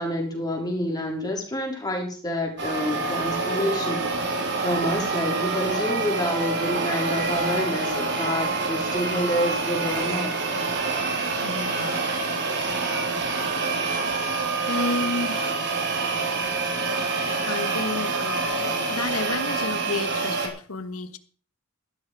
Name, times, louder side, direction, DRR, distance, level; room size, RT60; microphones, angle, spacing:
voice 1, 0.0-10.3, left 1 dB, 20° left, 0 dB, 4.0 m, -28 dB
sound 1, 2.6-20.5, right 3 dB, 55° right, 3.1 m, -26 dB
voice 2, 11.4-12.1 13.9-14.3 14.7-15.6 17.5-21.2, left 3 dB, 85° left, 12 dB, 1.3 m, -31 dB
13.5 x 12.0 x 4.7 m, 0.42 s
head